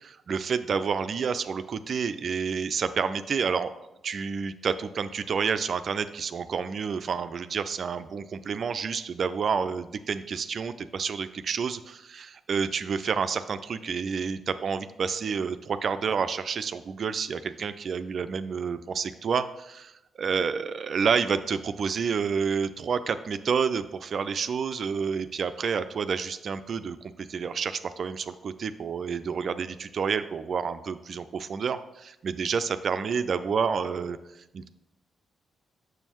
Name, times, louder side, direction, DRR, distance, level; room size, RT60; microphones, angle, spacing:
voice 1, 0.3-19.9 20.2-34.2 34.5-34.7, right 6 dB, 55° right, 11 dB, 0.4 m, -29 dB
7.0 x 6.1 x 3.0 m, 0.90 s
hypercardioid pair, 40°, 0 cm